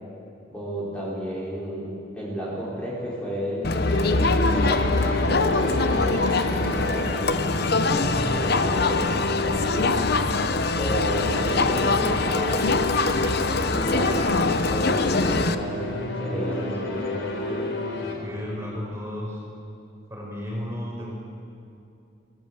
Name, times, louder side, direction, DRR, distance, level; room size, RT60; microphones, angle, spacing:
voice 1, 0.5-10.0 10.8-14.2 14.7-17.7, equal, 5° left, -7 dB, 5.0 m, -32 dB
Crowd, 3.6-15.6, left 3 dB, 55° left, 0.9 m, -23 dB
sound 1, 3.8-18.1, left 2 dB, 85° left, 4.0 m, -31 dB
voice 2, 18.0-19.4 20.1-21.1, left 1 dB, 15° right, -3 dB, 5.3 m, -34 dB
25.5 x 19.0 x 8.1 m, 2.6 s
head